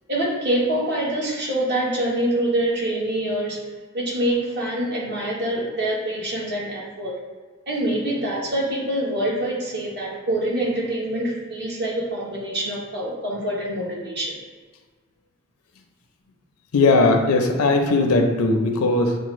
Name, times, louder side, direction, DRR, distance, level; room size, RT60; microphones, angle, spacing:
voice 1, 0.1-3.7 3.9-7.1 7.7-14.4, right 1 dB, 50° right, -5 dB, 1.1 m, -25 dB
voice 2, 16.7-19.2, left 3 dB, 80° left, 3 dB, 0.6 m, -18 dB
5.9 x 2.0 x 3.1 m, 1.4 s
head